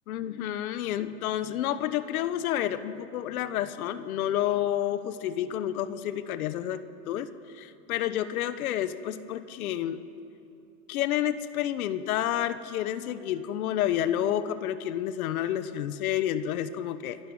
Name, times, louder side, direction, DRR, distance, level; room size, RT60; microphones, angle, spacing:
voice 1, 0.1-7.3 7.5-10.0 10.9-17.2, left 11 dB, 85° left, 12 dB, 1.2 m, -30 dB
24.5 x 12.5 x 9.7 m, 2.7 s
supercardioid pair, 145°, 42 cm